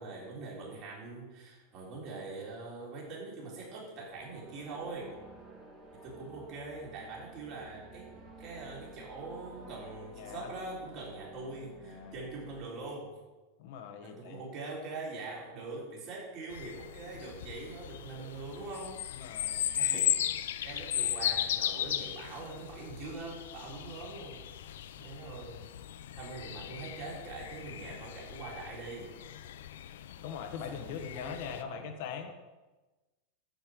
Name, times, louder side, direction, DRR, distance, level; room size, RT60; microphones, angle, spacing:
voice 1, 0.0-5.1 6.0-8.1 8.4-13.1 14.0-19.0 19.7-20.3 20.6-24.4 25.0-25.6 26.2-29.1 30.7-31.9, right 3 dB, 30° right, -4 dB, 3.6 m, -43 dB
sound 1, 4.0-12.6, right 1 dB, 10° right, 2.0 m, -52 dB
voice 2, 10.2-10.5 11.8-12.2 13.6-14.4 19.1-19.7 30.2-32.3, left 7 dB, 50° left, 5 dB, 1.1 m, -42 dB
sound 2, 16.5-31.6, left 11 dB, 90° left, 0.6 m, -37 dB
11.5 x 5.3 x 7.8 m, 1.2 s
supercardioid pair, 175°, 0 cm